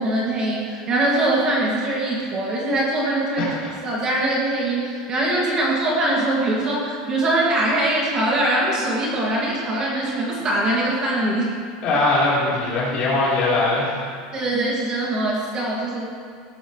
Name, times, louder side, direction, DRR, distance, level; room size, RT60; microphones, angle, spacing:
voice 1, 0.0-3.5 3.8-11.5 14.3-16.1, right 1 dB, 25° right, -4 dB, 2.1 m, -22 dB
voice 2, 11.8-14.0, left 2 dB, 35° left, -7 dB, 3.8 m, -21 dB
18.0 x 13.0 x 3.2 m, 2.1 s
supercardioid pair, 180°, 3 cm